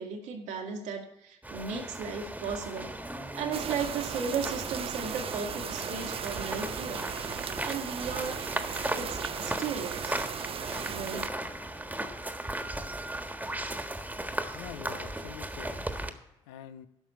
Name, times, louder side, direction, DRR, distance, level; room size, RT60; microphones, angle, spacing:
voice 1, 0.0-2.9 3.3-7.0 7.6-8.4 9.0-10.2 10.9-11.4, right 5 dB, 75° right, 3 dB, 1.9 m, -35 dB
sound 1, 1.4-16.1, right 1 dB, 10° right, 1.5 m, -37 dB
sound 2, 3.5-11.3, right 8 dB, 45° right, 0.4 m, -37 dB
voice 2, 14.5-16.9, left 10 dB, 85° left, 11 dB, 0.5 m, -46 dB
12.0 x 5.9 x 8.5 m, 0.92 s
hypercardioid pair, 50°, 13 cm